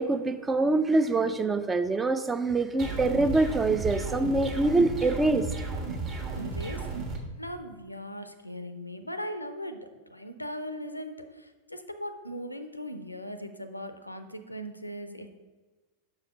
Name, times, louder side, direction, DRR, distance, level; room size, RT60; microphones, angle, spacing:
voice 1, 0.0-5.4, right 2 dB, 15° right, 11 dB, 0.4 m, -25 dB
sound 1, 2.8-7.2, right 4 dB, 35° right, 1.3 m, -34 dB
voice 2, 6.4-6.9 7.4-15.3, equal, 85° left, 9 dB, 0.5 m, -39 dB
6.2 x 4.8 x 5.4 m, 1.2 s
figure-of-eight pair, 90°, 0 cm